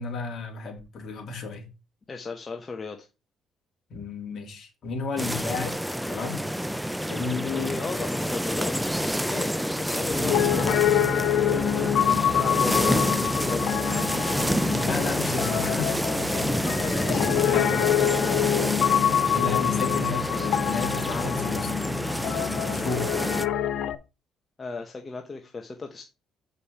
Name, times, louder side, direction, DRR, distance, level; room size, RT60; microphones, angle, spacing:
voice 1, 0.0-1.7 3.9-5.8 6.1-6.4 7.1-8.3 14.8-16.5 17.4-17.9 18.8-21.9 22.6-23.2, left 4 dB, 50° left, 3.2 m, -33 dB
voice 2, 2.1-3.1 7.5-11.0 11.5-14.5 16.5-18.3 24.6-26.0, left 4 dB, 25° left, 1.1 m, -36 dB
sound 1, 5.2-23.5, equal, ahead, 0.4 m, -28 dB
sound 2, 10.1-11.1 11.6-11.9 12.2-12.5 12.7-16.0, right 6 dB, 35° right, 0.7 m, -41 dB
Piano, 10.2-23.9, left 10 dB, 65° left, 0.7 m, -26 dB
8.5 x 5.4 x 4.3 m
cardioid pair, 130°, 0 cm